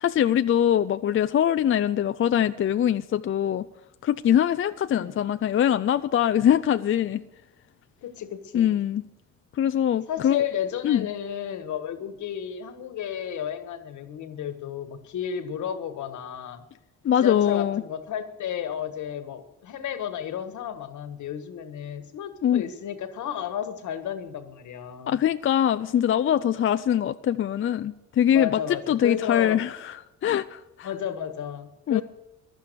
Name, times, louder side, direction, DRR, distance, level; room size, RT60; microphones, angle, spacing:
voice 1, 0.0-3.7 4.0-7.2 8.5-9.0 9.6-10.4 10.8-11.1 17.0-17.8 22.4-22.6 25.1-30.9 31.9-32.0, left 10 dB, 45° left, 0.5 m, -23 dB
voice 2, 8.0-8.8 10.1-16.6 17.2-25.2 28.3-29.6 30.8-32.0, left 9 dB, 75° left, 1.6 m, -32 dB
15.0 x 11.5 x 6.7 m
cardioid pair, 90°, 30 cm